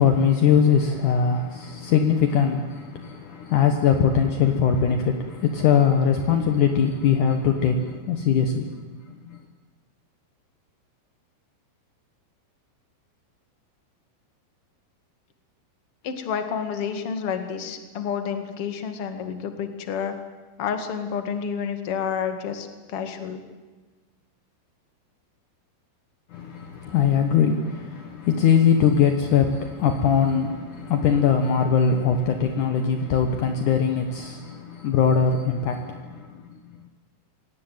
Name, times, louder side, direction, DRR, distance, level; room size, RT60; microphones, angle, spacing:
voice 1, 0.0-8.7 9.3-9.4 26.3-36.3, left 7 dB, 80° left, 1.8 m, -21 dB
voice 2, 16.0-20.1 20.6-23.4, left 7 dB, 50° left, 1.7 m, -29 dB
25.0 x 18.0 x 9.5 m
omnidirectional pair, 5.7 m